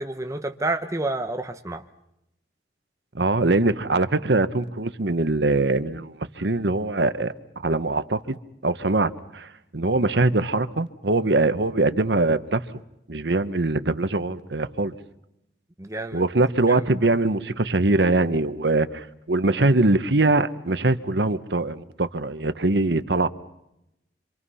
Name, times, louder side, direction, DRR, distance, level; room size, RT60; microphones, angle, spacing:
voice 1, 0.0-1.8 15.8-16.2 16.7-16.8, right 2 dB, 20° right, 1.0 m, -29 dB
voice 2, 3.1-7.3 7.6-8.4 8.6-12.6 13.1-14.9 16.1-23.3, right 2 dB, 75° right, 1.2 m, -22 dB
26.5 x 26.5 x 5.7 m
head